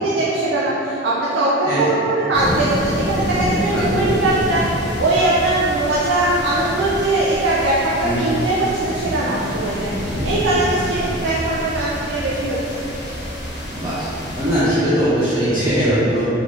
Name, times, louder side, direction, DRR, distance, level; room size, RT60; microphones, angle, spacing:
voice 1, 0.0-4.7 5.0-12.6, right 2 dB, 75° right, -6 dB, 0.4 m, -20 dB
voice 2, 1.6-2.0 3.7-4.6 8.0-8.3 11.2-11.3 13.7-14.1 14.4-16.3, equal, 15° right, -12 dB, 0.6 m, -21 dB
sound 1, 2.3-14.6, equal, 60° left, 0.8 m, -27 dB
3.7 x 2.5 x 3.1 m, 2.9 s
head